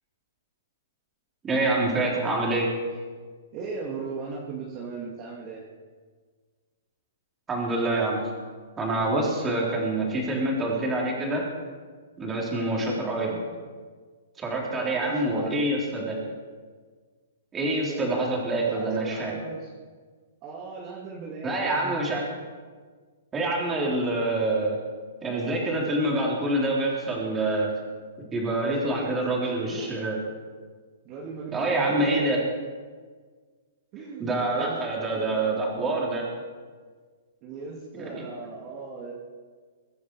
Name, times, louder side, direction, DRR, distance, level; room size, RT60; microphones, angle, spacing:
voice 1, 1.4-2.7 7.5-8.3 8.8-11.4 12.2-13.4 14.4-16.2 17.5-19.3 21.4-22.3 23.3-24.8 25.2-27.7 28.2-30.2 31.5-32.4 34.2-36.3 38.0-38.2, right 2 dB, 15° right, -3 dB, 3.6 m, -26 dB
voice 2, 3.5-5.7 12.6-12.8 14.7-15.8 17.9-19.7 20.4-22.0 28.6-29.9 31.0-32.3 33.9-34.8 35.1-35.5 37.4-39.1, right 4 dB, 30° right, -3 dB, 2.1 m, -38 dB
23.0 x 10.0 x 4.8 m, 1.5 s
hypercardioid pair, 160°, 0 cm